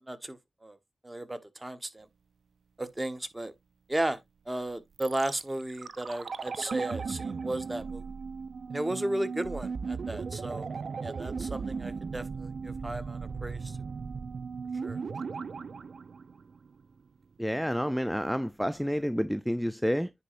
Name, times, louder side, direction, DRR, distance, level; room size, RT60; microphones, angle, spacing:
voice 1, 0.1-0.8 1.0-2.1 2.8-3.5 3.9-4.2 4.5-8.0 8.7-10.7 11.0-13.8 14.8-15.0, right 1 dB, 20° right, 1.1 m, -34 dB
sound 1, 5.0-17.0 17.2-17.3, right 5 dB, 65° right, 0.4 m, -37 dB
voice 2, 17.4-20.1, equal, ahead, 0.4 m, -29 dB
10.0 x 4.2 x 2.5 m
cardioid pair, 55°, 0 cm